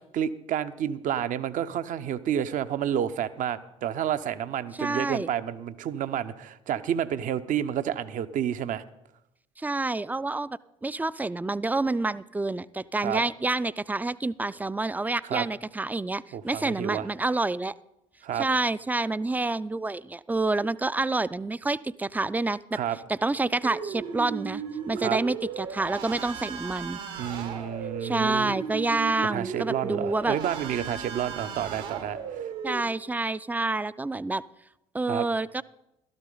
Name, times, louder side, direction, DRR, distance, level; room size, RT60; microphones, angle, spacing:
voice 1, 0.1-8.8 13.0-13.2 15.2-15.5 16.3-17.1 18.2-18.5 22.7-23.0 24.9-25.2 27.2-28.6 29.3-32.2 35.1-35.3, right 10 dB, 55° right, 13 dB, 0.7 m, -30 dB
voice 2, 4.8-5.3 9.6-17.7 18.4-22.8 23.1-24.6 24.9-27.0 28.0-30.4 32.6-34.4 34.9-35.6, right 2 dB, 10° right, 18 dB, 0.4 m, -28 dB
sound 1, 23.6-32.8, right 7 dB, 75° right, 1.5 m, -36 dB
13.0 x 12.5 x 3.9 m, 0.89 s
hypercardioid pair, 55°, 16 cm